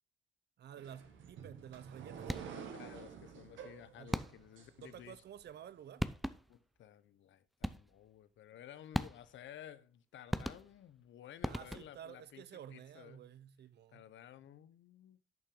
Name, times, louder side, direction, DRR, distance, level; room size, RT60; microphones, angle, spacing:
voice 1, 0.6-2.4 4.0-4.2 4.8-6.1 11.5-14.0, right 9 dB, 55° right, 0.7 m, -52 dB
sound 1, 0.8-5.4, right 7 dB, 75° right, 1.6 m, -50 dB
sound 2, 2.2-2.7 4.1-4.6 5.7-5.8 6.0-6.6 7.6-8.1 8.9-9.5 10.3-11.0 11.4-12.1, equal, ahead, 0.5 m, -39 dB
voice 2, 2.5-5.2 6.5-13.2 13.9-15.2, left 11 dB, 70° left, 0.8 m, -55 dB
10.5 x 5.6 x 3.8 m
cardioid pair, 90°, 20 cm